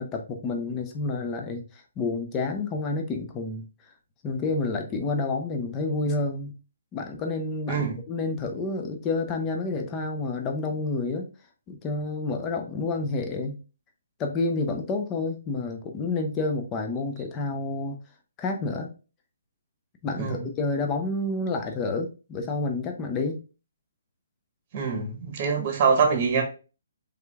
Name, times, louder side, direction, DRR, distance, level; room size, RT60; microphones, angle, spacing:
voice 1, 0.0-3.7 4.2-6.5 6.9-11.3 11.7-13.6 14.2-18.0 18.4-18.9 20.0-23.4, left 3 dB, 15° left, 0.6 m, -29 dB
voice 2, 24.7-26.4, right 5 dB, 25° right, 1.1 m, -24 dB
4.8 x 3.5 x 2.3 m
hypercardioid pair, 170°, 0 cm